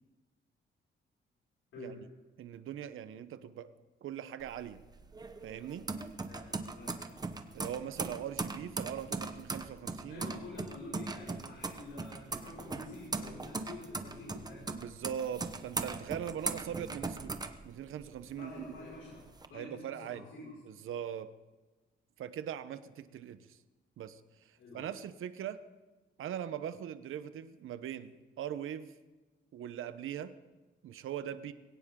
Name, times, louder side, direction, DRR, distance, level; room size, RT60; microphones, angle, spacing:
voice 1, 2.4-3.7 4.0-4.8 5.4-5.8 7.5-10.4 14.7-17.4 17.6-18.6 19.5-20.2 20.7-21.3 22.2-23.6 24.0-24.2 24.5-25.6 26.2-28.9 29.5-30.3 30.8-31.5, right 9 dB, 85° right, 12 dB, 1.0 m, -41 dB
sound 1, 4.4-18.2 18.6-19.5, right 3 dB, 20° right, 0.9 m, -39 dB
voice 2, 10.1-14.7 16.4-16.5 18.3-20.5 24.6-24.9, left 2 dB, 80° left, -6 dB, 5.8 m, -48 dB
21.5 x 17.5 x 3.8 m, 1.2 s
cardioid pair, 150°, 21 cm